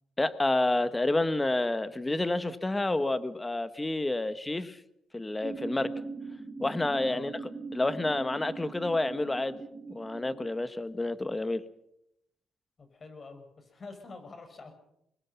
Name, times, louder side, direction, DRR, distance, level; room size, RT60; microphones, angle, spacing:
voice 1, 0.2-4.8 5.1-5.9 6.6-7.3 7.7-9.6 9.9-11.6, left 2 dB, 15° left, 13 dB, 1.5 m, -29 dB
sound 1, 5.4-10.5, right 4 dB, 5° right, 4.3 m, -41 dB
voice 2, 12.8-14.7, left 3 dB, 40° left, 7 dB, 5.8 m, -47 dB
25.0 x 21.0 x 5.9 m, 0.78 s
cardioid pair, 90°, 0 cm